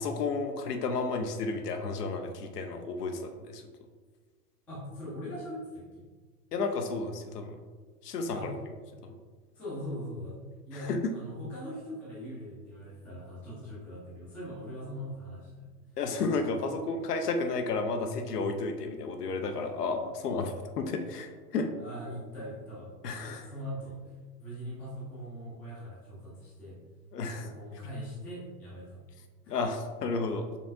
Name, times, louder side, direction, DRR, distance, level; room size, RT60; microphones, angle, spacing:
voice 1, 0.0-3.6 6.5-7.6 8.0-8.5 9.0-9.1 10.8-11.1 16.0-21.7 23.0-23.5 27.1-27.5 29.5-30.5, left 3 dB, 75° left, 6 dB, 0.7 m, -32 dB
voice 2, 4.7-6.0 8.3-8.5 9.5-10.4 10.7-15.7 16.5-16.8 20.5-20.6 21.8-26.8 27.3-29.0 29.4-29.5, equal, 5° left, -8 dB, 0.3 m, -41 dB
5.3 x 3.3 x 2.6 m, 1.4 s
hypercardioid pair, 110°, 47 cm